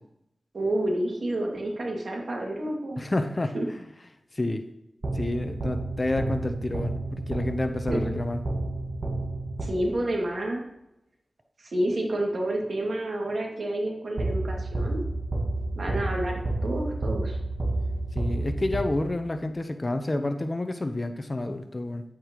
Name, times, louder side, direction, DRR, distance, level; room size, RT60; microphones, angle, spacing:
voice 1, 0.5-3.0 3.5-3.7 7.9-8.1 9.6-10.6 11.6-15.0 15.8-17.4, right 1 dB, 70° right, -1 dB, 2.3 m, -29 dB
voice 2, 3.0-3.8 4.3-4.6 5.1-8.4 18.1-22.0, left 2 dB, 35° left, 7 dB, 0.9 m, -29 dB
sound 1, 5.0-10.1 14.2-19.4, right 2 dB, 45° right, 1.7 m, -30 dB
10.0 x 8.7 x 3.1 m, 0.88 s
wide cardioid pair, 65°, 0 cm